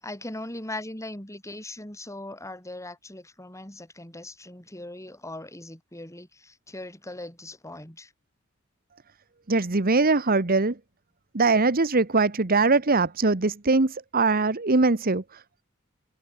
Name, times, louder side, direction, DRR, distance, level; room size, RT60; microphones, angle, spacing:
voice 1, 0.0-8.1, left 1 dB, 15° left, 6.6 m, -39 dB
voice 2, 9.5-10.8 11.3-15.6, right 3 dB, 45° right, 1.3 m, -22 dB
head